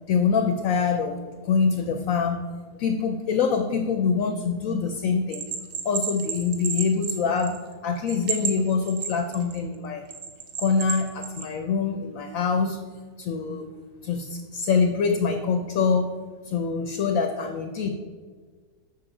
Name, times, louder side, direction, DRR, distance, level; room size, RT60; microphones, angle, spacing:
voice 1, 0.1-2.4 2.8-5.4 5.8-10.0 10.6-12.8 13.2-13.7 14.0-16.1 16.5-17.9, left 5 dB, 70° left, 6 dB, 0.8 m, -25 dB
Bell, 5.3-7.7 8.1-9.6 10.1-11.5, right 7 dB, 60° right, 1.2 m, -31 dB
7.6 x 6.2 x 4.8 m, 1.5 s
omnidirectional pair, 2.0 m